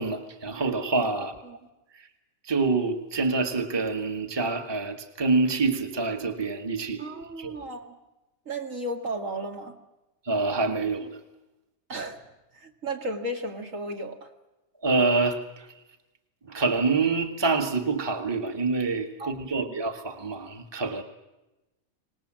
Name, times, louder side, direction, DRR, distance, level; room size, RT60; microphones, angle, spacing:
voice 1, 0.0-1.4 2.0-2.1 2.4-7.1 7.4-7.6 10.2-11.2 14.8-15.7 16.5-21.0, right 3 dB, 20° right, 1.5 m, -26 dB
voice 2, 7.0-8.0 8.5-9.8 11.9-12.2 12.6-14.3 19.2-19.3 19.7-19.8, right 1 dB, 60° right, 2.5 m, -34 dB
25.5 x 19.5 x 7.5 m
omnidirectional pair, 1.5 m